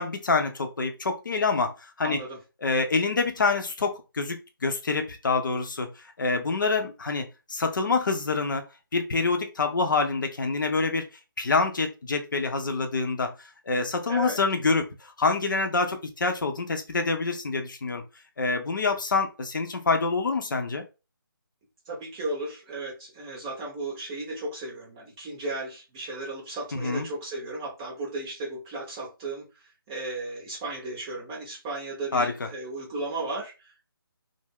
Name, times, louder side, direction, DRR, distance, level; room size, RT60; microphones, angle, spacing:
voice 1, 0.0-2.2 2.6-5.9 6.2-8.7 8.9-11.1 11.4-18.0 18.4-20.8 26.7-27.1 32.1-32.5, left 4 dB, 55° left, 5 dB, 0.6 m, -26 dB
voice 2, 2.0-2.4 14.1-14.4 21.9-33.8, right 2 dB, 10° right, -3 dB, 0.6 m, -35 dB
2.3 x 2.0 x 3.4 m, 0.29 s
figure-of-eight pair, 165°, 12 cm